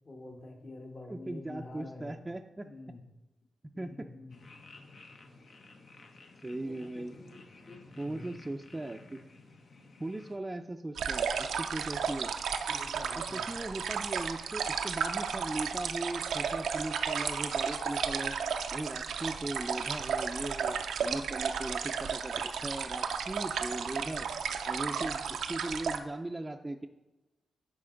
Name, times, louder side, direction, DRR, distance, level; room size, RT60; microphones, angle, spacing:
voice 1, 0.0-2.2 2.6-3.0 3.7-4.4 6.7-8.3 12.7-13.5 24.9-25.2, left 2 dB, 50° left, 1 dB, 1.4 m, -47 dB
voice 2, 1.1-2.7 3.8-4.1 6.4-7.1 8.0-9.2 10.0-12.3 13.1-18.4 18.7-24.3 24.6-26.9, right 2 dB, 20° right, 4 dB, 0.4 m, -38 dB
sound 1, 4.3-10.4, left 3 dB, 65° left, 0.9 m, -54 dB
sound 2, 11.0-26.0, right 6 dB, 80° right, 0.5 m, -33 dB
9.8 x 4.2 x 3.8 m, 1.1 s
supercardioid pair, 45°, 0 cm